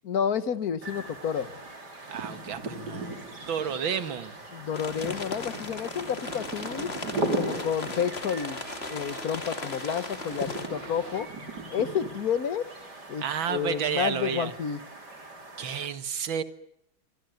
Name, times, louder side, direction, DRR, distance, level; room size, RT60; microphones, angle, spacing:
voice 1, 0.0-1.5 4.5-6.9 7.3-8.6 8.9-11.3 11.7-12.7 13.1-14.8, left 7 dB, 50° left, 14 dB, 1.7 m, -30 dB
sound 1, 0.8-15.9, right 2 dB, 55° right, 4.7 m, -38 dB
voice 2, 2.1-3.1 3.5-4.4 13.2-14.5 15.6-16.4, right 7 dB, 75° right, 11 dB, 2.5 m, -31 dB
sound 2, 4.7-10.7, left 3 dB, 30° left, 2.4 m, -38 dB
Boat Water vehicle, 6.2-11.2, right 4 dB, 90° right, 5.6 m, -45 dB
27.0 x 24.0 x 9.4 m, 0.74 s
omnidirectional pair, 2.2 m